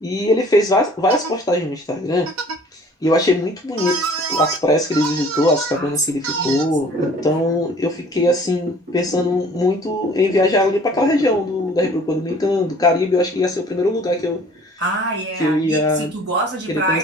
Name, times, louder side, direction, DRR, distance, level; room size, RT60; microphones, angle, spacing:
voice 1, 0.0-2.3 2.7-14.4 15.4-16.1 16.7-17.0, left 1 dB, 20° left, 0.3 m, -20 dB
sound 1, 1.1-1.3 2.3-2.6 3.8-4.6 4.9-5.8 6.2-6.7, right 5 dB, 90° right, 0.4 m, -25 dB
voice 2, 5.7-6.6 7.0-7.4 14.8-17.0, right 2 dB, 50° right, 1.2 m, -25 dB
sound 2, 6.8-14.6, right 1 dB, 35° right, 0.8 m, -31 dB
2.2 x 2.0 x 3.2 m
head